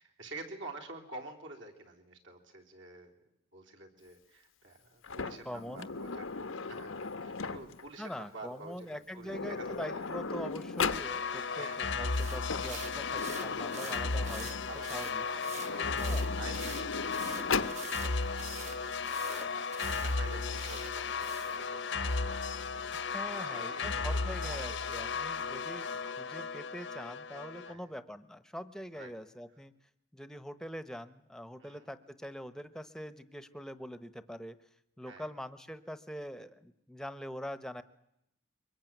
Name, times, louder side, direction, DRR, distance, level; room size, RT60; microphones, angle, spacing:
voice 1, 0.0-3.1 3.5-10.0 11.5-11.9 14.6-22.4 22.7-25.1 27.6-27.9 28.9-29.1 31.6-31.9 35.1-35.3, right 2 dB, 65° right, 1 dB, 3.8 m, -49 dB
Sliding door, 5.0-7.9 8.9-9.0 9.2-11.1 12.2-14.7 15.5-17.8, left 4 dB, 85° left, 1.0 m, -37 dB
voice 2, 5.4-5.9 8.0-15.2 16.0-16.4 22.9-29.7 30.1-34.6 35.0-37.8, equal, 5° left, 12 dB, 0.9 m, -43 dB
sound 1, 10.9-27.7, left 4 dB, 65° left, 1.0 m, -35 dB
sound 2, 12.1-21.6, right 6 dB, 35° right, 1.0 m, -47 dB
24.0 x 21.5 x 9.3 m, 0.80 s
head